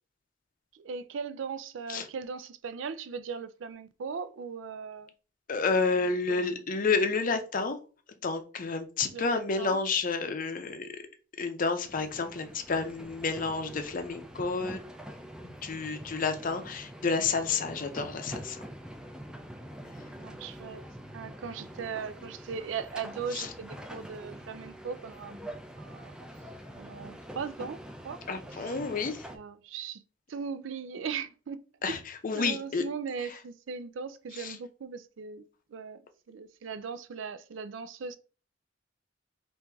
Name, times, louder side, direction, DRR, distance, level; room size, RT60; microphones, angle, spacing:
voice 1, 0.7-5.1 6.0-6.4 9.1-9.8 20.1-20.9 21.1-26.1 26.8-28.2 28.5-28.8 29.3-30.0 30.3-31.6 32.3-35.4 35.7-36.0 36.3-38.2, right 6 dB, 90° right, 0.4 m, -39 dB
voice 2, 5.5-7.8 8.1-10.9 11.4-14.8 15.4-18.6 23.3-23.5 28.3-29.3 31.8-32.8 33.3-33.4 34.4-34.6, left 4 dB, 45° left, 0.6 m, -30 dB
sound 1, 11.8-29.4, equal, 5° right, 0.5 m, -45 dB
4.5 x 2.6 x 3.5 m
head